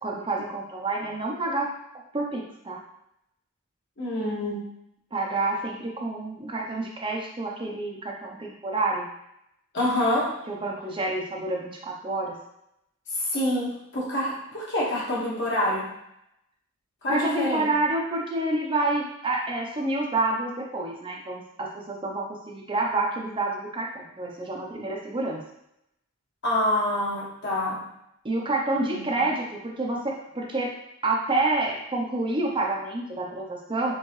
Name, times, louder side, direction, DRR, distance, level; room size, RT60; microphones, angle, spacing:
voice 1, 0.0-1.7 2.1-2.8 5.1-9.1 10.5-12.4 17.1-25.4 28.2-30.7 31.0-33.9, right 2 dB, 25° right, -1 dB, 0.6 m, -28 dB
voice 2, 4.0-4.6 9.7-10.4 13.1-15.9 17.0-17.7 26.4-27.9 28.9-29.2, left 1 dB, 55° left, -6 dB, 1.5 m, -26 dB
4.5 x 3.5 x 3.1 m, 0.79 s
head